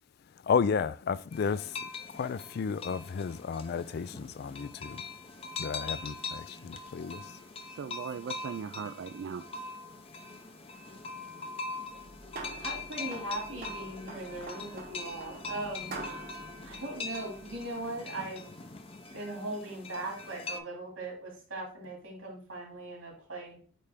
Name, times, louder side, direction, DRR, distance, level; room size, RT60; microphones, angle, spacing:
voice 1, 0.4-5.0 5.6-7.4, left 6 dB, 50° left, 0.3 m, -32 dB
sound 1, 1.3-20.6, left 3 dB, 30° left, 0.7 m, -42 dB
voice 2, 7.4-9.4, right 6 dB, 60° right, 0.3 m, -39 dB
sound 2, 11.9-17.8, right 2 dB, 45° right, 0.9 m, -46 dB
voice 3, 12.6-16.0 16.6-18.5 19.1-23.6, right 2 dB, 90° right, 2.7 m, -39 dB
8.4 x 3.3 x 3.6 m
head